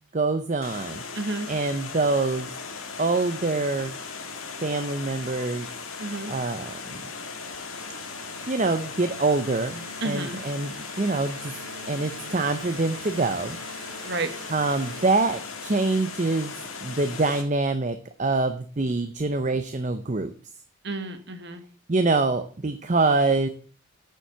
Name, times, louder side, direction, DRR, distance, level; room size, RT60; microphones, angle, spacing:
voice 1, 0.1-1.0 1.5-2.5 3.0-4.0 4.6-5.7 6.3-7.0 8.5-11.5 11.9-13.6 14.5-16.5 16.8-20.3 21.9-23.5, right 3 dB, 35° right, 10 dB, 0.7 m, -25 dB
Water, 0.6-17.4, left 4 dB, 75° left, 2.2 m, -38 dB
voice 2, 1.1-1.5 6.0-6.3 10.0-10.4 14.0-14.3 20.8-21.6, right 2 dB, 55° right, 8 dB, 1.6 m, -31 dB
sound 1, 7.5-15.9, right 3 dB, 90° right, 2.2 m, -46 dB
9.2 x 7.5 x 6.8 m, 0.43 s
head